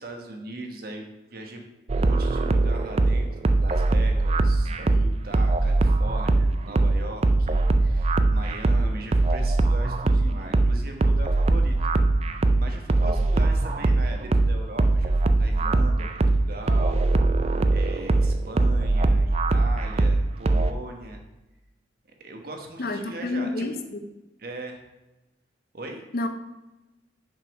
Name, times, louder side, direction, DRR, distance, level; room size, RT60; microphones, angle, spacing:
voice 1, 0.0-1.6 1.9-11.7 12.2-17.1 17.7-21.2 22.2-23.8 24.4-24.8 25.7-26.0, right 2 dB, 50° right, 3 dB, 1.1 m, -39 dB
sound 1, 1.9-20.7, right 2 dB, 35° right, 0.4 m, -21 dB
voice 2, 22.8-24.0 26.1-26.3, left 2 dB, 50° left, 7 dB, 0.7 m, -29 dB
6.1 x 5.4 x 5.2 m, 1.0 s
head